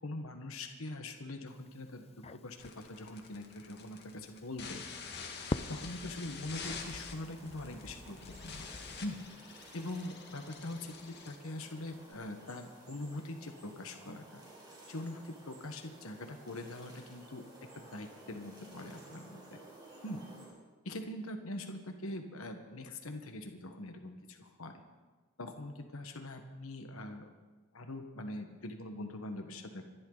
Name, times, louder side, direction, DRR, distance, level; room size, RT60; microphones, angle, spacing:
voice 1, 0.0-4.8 5.7-8.7 9.0-9.2 9.7-14.4 14.9-17.4 17.7-19.6 20.0-20.2 20.8-24.8 25.4-27.2 27.7-29.9, left 1 dB, 70° left, 5 dB, 1.4 m, -43 dB
Crackle, 1.5-9.3, left 3 dB, 30° left, 0.4 m, -46 dB
sound 1, 2.6-12.1, left 5 dB, 50° left, 1.9 m, -47 dB
sound 2, 6.6-20.5, right 2 dB, 20° right, 4.9 m, -55 dB
25.5 x 12.0 x 4.0 m, 1.3 s
head